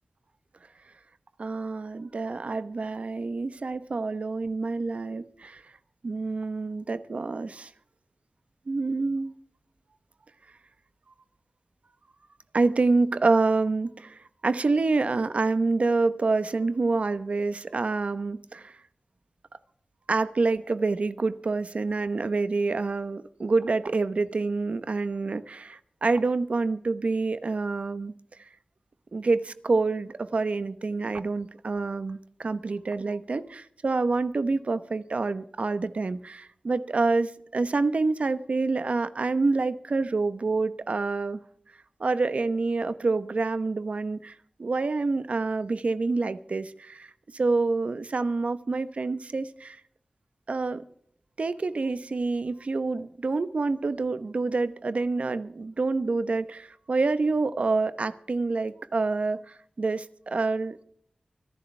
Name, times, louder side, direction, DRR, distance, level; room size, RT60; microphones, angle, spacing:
voice 1, 1.4-5.6 6.0-7.7 8.7-9.3 12.5-18.8 20.1-28.1 29.1-41.4 42.0-49.8 50.5-50.8 51.4-60.8, right 3 dB, 65° right, 1.0 m, -27 dB
24.5 x 12.0 x 3.4 m
wide cardioid pair, 60°, 2 cm